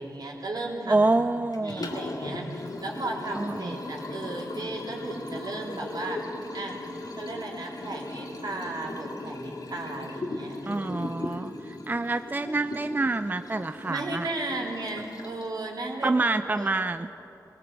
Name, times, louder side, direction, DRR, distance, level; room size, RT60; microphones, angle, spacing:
voice 1, 0.0-1.0 1.6-6.2 6.5-6.8 7.2-10.9 11.3-11.4 13.9-16.1 16.4-16.7, right 2 dB, 70° right, -1 dB, 3.5 m, -35 dB
voice 2, 0.9-1.9 3.3-3.8 10.7-14.3 16.0-17.1, right 2 dB, 25° right, 10 dB, 0.5 m, -27 dB
Liquid, 1.5-15.6, left 2 dB, 65° left, 2.2 m, -38 dB
19.0 x 18.5 x 8.1 m, 2.8 s
cardioid pair, 45°, 7 cm